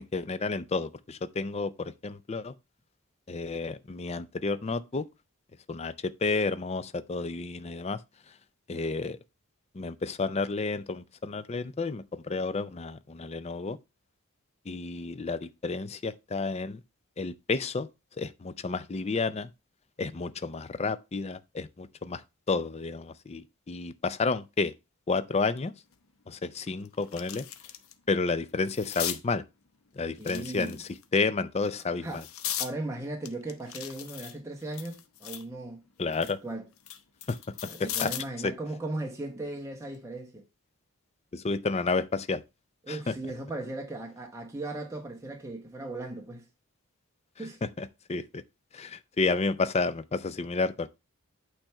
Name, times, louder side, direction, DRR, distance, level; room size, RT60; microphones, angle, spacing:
voice 1, 0.0-2.5 3.3-5.1 5.7-8.0 8.7-9.2 9.7-13.8 14.7-16.8 17.2-17.9 18.2-19.5 20.0-22.2 22.5-24.7 25.1-25.7 26.3-27.5 28.1-29.4 30.0-32.2 36.0-36.4 37.3-37.4 37.8-38.1 38.4-38.5 41.3-42.4 42.9-43.1 47.6-48.4 48.7-50.9, left 4 dB, 30° left, 0.4 m, -31 dB
sound 1, 25.9-26.0 26.5-27.9 28.3-29.2 30.2-31.0 31.6-32.7 33.3-35.5 35.9-38.4 39.7-40.0, left 11 dB, 75° left, 0.7 m, -38 dB
voice 2, 30.2-30.8 32.0-32.2 32.6-35.8 36.2-36.6 37.6-40.4 42.8-46.5 47.4-47.6, right 2 dB, 15° right, 0.9 m, -37 dB
8.8 x 3.3 x 5.6 m
head